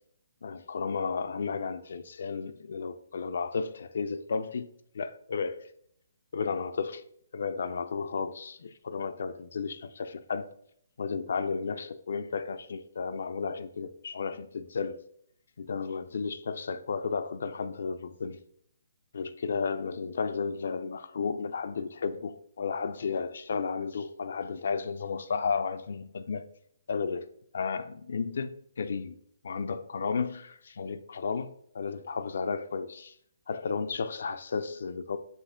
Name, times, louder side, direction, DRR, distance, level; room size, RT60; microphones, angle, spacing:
voice 1, 0.4-4.7 4.9-5.6 6.3-7.0 7.3-10.5 11.0-15.0 15.6-18.4 19.1-26.4 26.9-27.3 27.5-29.1 29.4-33.1 33.5-35.2, left 5 dB, 60° left, 0.3 m, -33 dB
5.5 x 2.5 x 3.6 m
hypercardioid pair, 170°, 0 cm